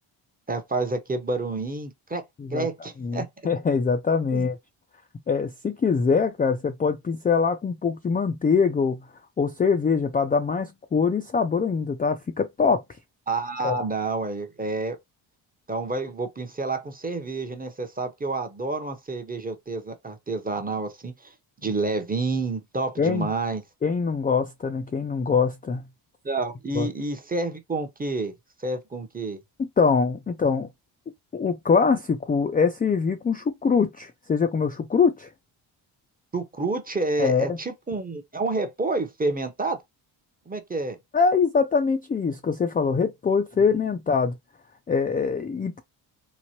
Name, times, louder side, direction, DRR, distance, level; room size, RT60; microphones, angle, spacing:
voice 1, 0.5-2.2 2.5-3.3 4.3-4.5 13.3-15.0 15.7-21.3 21.6-23.6 26.2-28.3 28.6-29.4 36.3-39.8 40.5-41.0, right 3 dB, 20° right, 0.7 m, -29 dB
voice 2, 3.0-4.6 5.3-9.0 9.4-12.8 13.6-13.8 23.0-23.3 23.8-25.8 26.7-26.9 29.6-30.7 31.3-35.3 37.2-37.6 41.1-44.4 44.9-45.8, left 5 dB, 20° left, 0.4 m, -23 dB
3.0 x 2.1 x 2.8 m
supercardioid pair, 55°, 50 cm